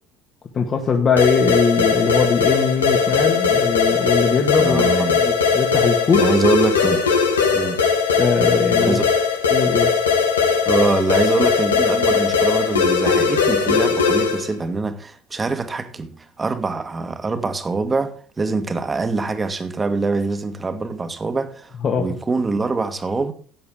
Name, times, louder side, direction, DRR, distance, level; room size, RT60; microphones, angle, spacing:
voice 1, 0.5-6.3 8.2-9.0 9.5-9.9 21.8-22.1, left 5 dB, 40° left, 2.0 m, -20 dB
sound 1, 1.2-14.5, left 5 dB, 90° left, 1.8 m, -19 dB
voice 2, 4.6-5.2 6.2-7.1 7.5-7.8 8.9-9.0 10.7-23.3, right 3 dB, 25° right, 1.8 m, -24 dB
15.0 x 8.7 x 3.8 m
hypercardioid pair, 65°, 0 cm